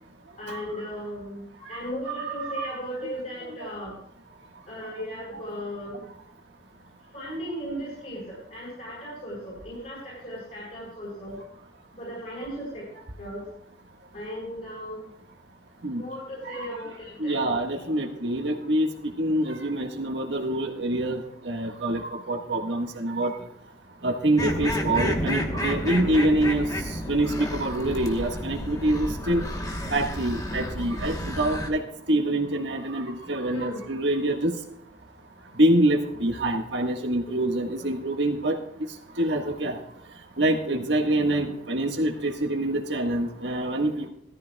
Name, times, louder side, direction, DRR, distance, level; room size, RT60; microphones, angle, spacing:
voice 1, 0.4-4.0 4.7-6.1 7.1-11.4 12.0-12.9 13.2-13.5 14.1-15.1 15.9-18.2 33.5-33.8 37.8-37.9, equal, 45° left, -5 dB, 4.9 m, -37 dB
voice 2, 2.1-2.8 15.8-16.0 16.4-16.7 17.2-18.9 19.2-23.3 24.0-26.6 27.1-29.4 29.9-31.8 32.1-34.5 35.6-38.6 39.2-39.8 40.4-44.1, right 1 dB, 75° right, 2 dB, 1.6 m, -25 dB
sound 1, 24.4-31.7, left 1 dB, 20° left, 1.1 m, -31 dB
17.5 x 13.5 x 2.3 m, 0.72 s
head